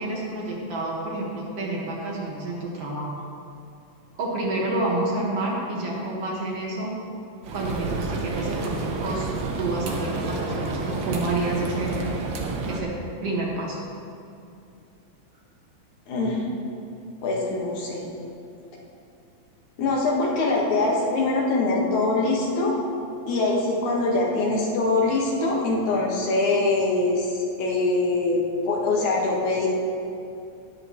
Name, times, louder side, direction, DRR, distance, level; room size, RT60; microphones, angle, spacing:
voice 1, 0.0-3.2 4.1-6.9 7.5-9.3 9.6-12.1 12.7-12.9 13.2-13.8, right 2 dB, 55° right, -3 dB, 2.4 m, -29 dB
sound 1, 7.4-12.8, right 3 dB, 75° right, 1.1 m, -30 dB
voice 2, 16.1-16.4 17.2-18.1 19.8-22.8 23.3-29.7, left 2 dB, 75° left, -3 dB, 2.9 m, -23 dB
19.0 x 7.9 x 3.0 m, 2.6 s
omnidirectional pair, 3.4 m